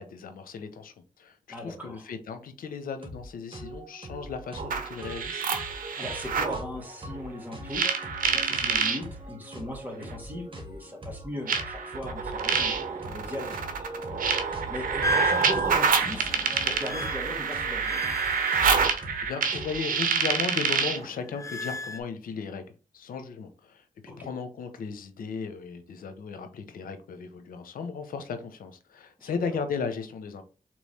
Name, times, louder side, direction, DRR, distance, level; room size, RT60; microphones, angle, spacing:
voice 1, 0.0-5.5 18.9-23.9 24.2-30.4, left 5 dB, 90° left, 0.7 m, -36 dB
voice 2, 1.5-2.0 6.0-18.0 24.1-24.3 29.2-29.5, left 1 dB, 10° right, 2.3 m, -39 dB
sound 1, 3.0-3.2 3.5-20.0, equal, 40° right, 1.8 m, -42 dB
sound 2, 4.6-6.6 7.7-9.0 10.1-10.2 11.5-21.1, right 6 dB, 80° right, 0.7 m, -27 dB
sound 3, 15.0-19.7 20.1-22.0, left 1 dB, 20° left, 0.7 m, -35 dB
3.7 x 3.1 x 4.1 m
cardioid pair, 45°, 14 cm